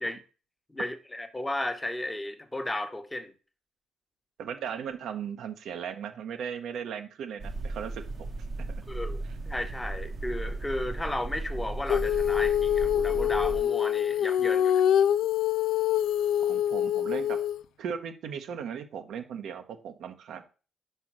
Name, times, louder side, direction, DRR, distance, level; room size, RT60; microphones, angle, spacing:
voice 1, 0.7-3.3 8.9-14.8, left 1 dB, 10° left, 1.1 m, -34 dB
voice 2, 4.4-8.0 8.7-8.8 16.5-17.4 17.8-20.4, right 7 dB, 75° right, 0.9 m, -37 dB
sound 1, 7.4-13.6, right 2 dB, 50° right, 0.9 m, -36 dB
Female singing, 11.9-17.6, left 10 dB, 80° left, 0.3 m, -25 dB
5.1 x 4.5 x 6.0 m
cardioid pair, 90°, 0 cm